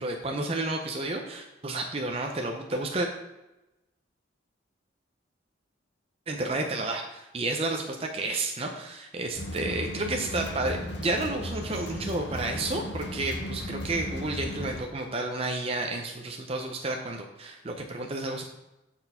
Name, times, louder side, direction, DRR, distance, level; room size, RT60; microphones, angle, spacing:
voice 1, 0.0-3.1 6.3-18.4, right 2 dB, 30° right, 2 dB, 0.6 m, -31 dB
sound 1, 9.4-14.8, left 1 dB, 60° left, 0.8 m, -36 dB
6.5 x 4.4 x 5.4 m, 0.97 s
head